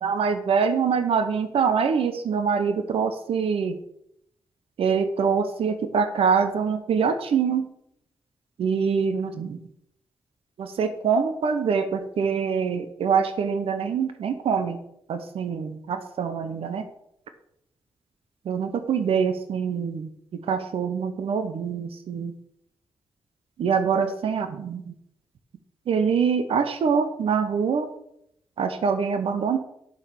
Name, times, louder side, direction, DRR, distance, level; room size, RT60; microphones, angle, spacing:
voice 1, 0.0-3.8 4.8-7.7 8.6-9.6 10.6-14.8 15.1-16.9 18.4-22.3 23.6-24.8 25.9-27.9 28.6-29.6, right 6 dB, 85° right, 9 dB, 0.9 m, -24 dB
7.3 x 6.5 x 7.0 m, 0.75 s
cardioid pair, 55°, 10 cm